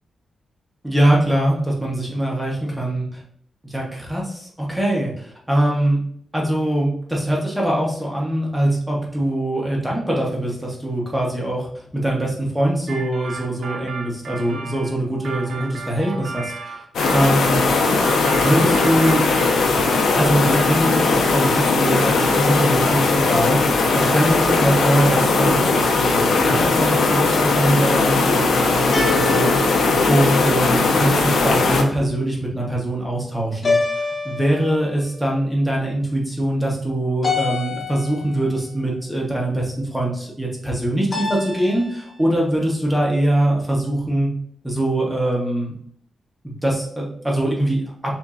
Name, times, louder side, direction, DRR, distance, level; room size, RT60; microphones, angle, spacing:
voice 1, 0.8-3.2 3.6-6.0 6.3-11.7 11.9-17.6 18.3-19.3 20.2-23.6 23.9-44.3 44.6-45.7 46.4-48.1, right 1 dB, 5° right, -3 dB, 0.9 m, -22 dB
sound 1, 12.9-17.3 17.9-20.0 20.2-21.2, right 4 dB, 80° right, 0.6 m, -34 dB
sound 2, 16.9-31.8, left 3 dB, 80° left, 0.7 m, -18 dB
sound 3, 28.9-30.9 33.6-35.0 37.2-38.4 41.1-42.1, left 3 dB, 35° left, 1.0 m, -27 dB
6.9 x 2.6 x 2.4 m, 0.65 s
wide cardioid pair, 180°, 0 cm